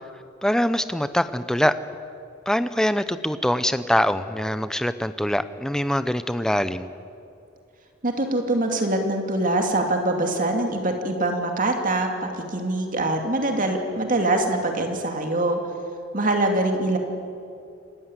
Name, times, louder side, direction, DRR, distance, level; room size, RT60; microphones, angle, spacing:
voice 1, 0.4-1.8 2.5-6.9, equal, 5° left, 12 dB, 0.7 m, -23 dB
voice 2, 8.0-15.6 16.1-17.0, right 2 dB, 40° right, 3 dB, 2.5 m, -24 dB
27.0 x 15.0 x 9.8 m, 2.5 s
head